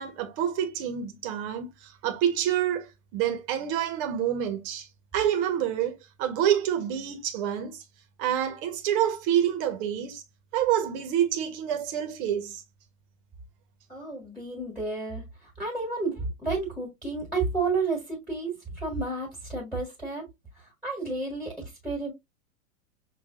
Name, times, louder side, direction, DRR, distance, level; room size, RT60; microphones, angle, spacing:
voice 1, 0.0-4.9 5.1-7.8 8.2-10.2 10.5-12.6, right 10 dB, 40° right, 1.2 m, -27 dB
voice 2, 13.9-20.3 20.5-22.1, right 3 dB, ahead, 1.7 m, -31 dB
5.9 x 2.6 x 2.5 m
figure-of-eight pair, 100°, 40 cm